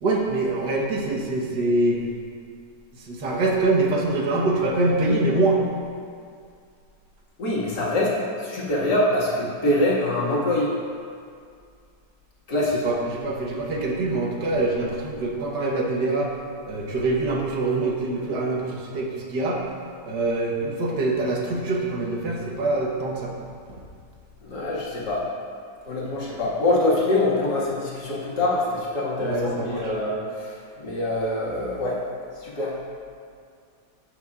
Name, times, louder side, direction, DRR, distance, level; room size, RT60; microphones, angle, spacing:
voice 1, 0.0-2.0 2.9-5.6 12.8-16.3 16.7-19.6 20.0-23.3 29.2-29.9, right 2 dB, 75° right, -2 dB, 1.7 m, -24 dB
voice 2, 7.4-10.7 12.5-12.8 24.4-25.2 25.8-32.0 32.4-32.7, left 1 dB, 70° left, -6 dB, 2.4 m, -24 dB
16.0 x 5.9 x 2.4 m, 2.2 s
omnidirectional pair, 1.9 m